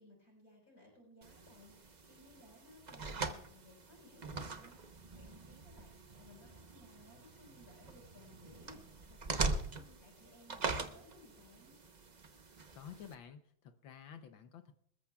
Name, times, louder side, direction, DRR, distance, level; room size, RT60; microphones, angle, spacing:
voice 1, 0.0-11.8, left 1 dB, 45° left, -4 dB, 6.1 m, -61 dB
sound 1, 1.2-13.1, right 3 dB, 60° right, 0.4 m, -42 dB
voice 2, 12.7-14.7, left 8 dB, 70° left, 8 dB, 1.5 m, -52 dB
26.5 x 14.0 x 2.4 m, 0.72 s
omnidirectional pair, 2.3 m